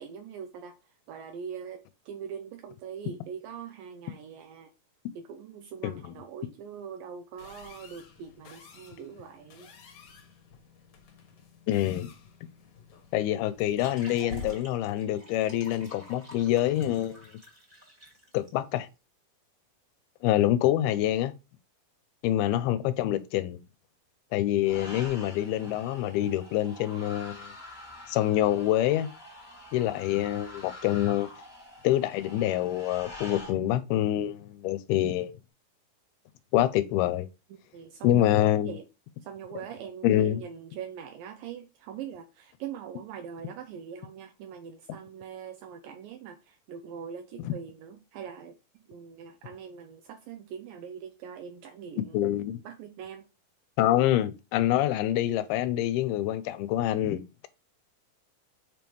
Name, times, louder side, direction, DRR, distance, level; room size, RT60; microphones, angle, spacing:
voice 1, 0.0-4.7 5.2-9.7 37.5-38.8 39.2-48.6 48.9-52.2 52.6-53.3, right 7 dB, 80° right, 2.2 m, -42 dB
sound 1, 7.4-16.5, left 4 dB, 60° left, 2.4 m, -49 dB
voice 2, 11.7-12.1 13.1-17.3 18.3-18.9 20.2-21.3 22.2-23.6 24.3-27.5 28.1-29.1 29.7-31.3 31.8-35.3 36.5-37.3 38.0-38.8 40.0-40.4 47.5-47.6 52.1-52.6 53.8-57.2, left 13 dB, 85° left, 2.5 m, -26 dB
sound 2, 13.5-18.5, equal, 20° right, 1.6 m, -50 dB
JK Portugal, 24.6-33.5, left 2 dB, 10° left, 1.6 m, -46 dB
7.5 x 5.2 x 3.1 m
omnidirectional pair, 4.4 m